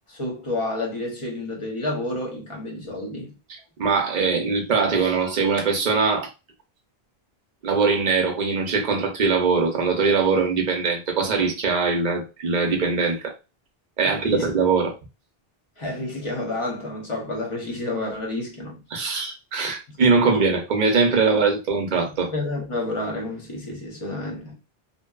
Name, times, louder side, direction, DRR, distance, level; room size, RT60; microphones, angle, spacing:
voice 1, 0.1-3.4 14.0-14.5 15.8-18.8 19.9-20.4 22.0-24.6, left 2 dB, 35° left, 0.8 m, -30 dB
voice 2, 3.5-6.3 7.6-13.3 14.0-14.9 18.9-22.3, right 4 dB, 50° right, 0.7 m, -22 dB
2.7 x 2.2 x 2.2 m
omnidirectional pair, 1.0 m